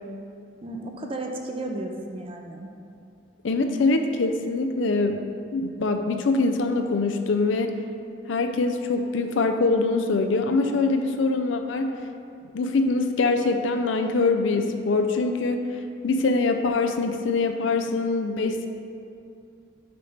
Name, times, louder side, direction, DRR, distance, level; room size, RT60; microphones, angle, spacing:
voice 1, 0.6-2.7, right 2 dB, 30° right, 2 dB, 0.5 m, -33 dB
voice 2, 3.4-5.2 5.5-7.7 8.3-11.9 12.5-15.6 16.0-18.7, left 3 dB, 75° left, 6 dB, 0.5 m, -23 dB
6.8 x 3.3 x 5.6 m, 2.6 s
head